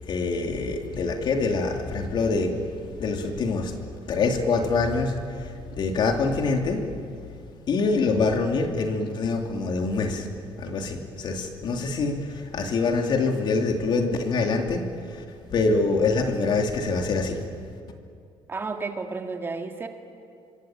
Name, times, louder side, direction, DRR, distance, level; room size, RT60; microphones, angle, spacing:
voice 1, 0.1-3.8 4.1-7.1 7.7-10.3 10.6-15.2 15.5-17.5, left 3 dB, 55° left, 4 dB, 2.9 m, -25 dB
voice 2, 18.5-19.9, right 4 dB, 25° right, 5 dB, 2.0 m, -32 dB
27.0 x 23.5 x 9.1 m, 2.4 s
cardioid pair, 155°, 10 cm